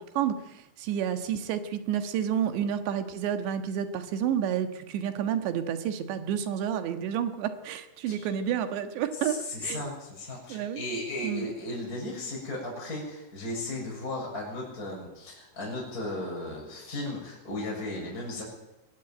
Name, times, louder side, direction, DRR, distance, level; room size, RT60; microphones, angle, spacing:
voice 1, 0.2-9.8 10.5-10.8 11.2-11.5, right 9 dB, 85° right, 8 dB, 3.7 m, -30 dB
voice 2, 9.2-18.4, left 2 dB, 20° left, -3 dB, 7.1 m, -35 dB
21.5 x 17.0 x 9.0 m, 0.96 s
omnidirectional pair, 5.0 m